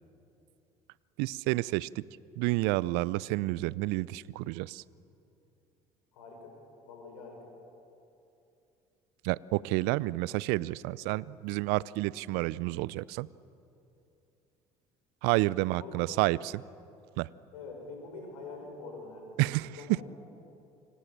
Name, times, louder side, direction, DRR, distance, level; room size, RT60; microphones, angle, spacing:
voice 1, 1.2-2.1 2.4-4.8 9.2-13.3 15.2-16.6 17.2-17.3 19.4-20.0, right 20 dB, 65° right, 22 dB, 0.6 m, -30 dB
voice 2, 6.1-6.5 6.8-7.5 15.7-16.2 17.5-19.4 19.7-20.0, left 3 dB, 80° left, 2 dB, 6.5 m, -45 dB
28.5 x 26.0 x 7.5 m, 2.8 s
hypercardioid pair, 55°, 18 cm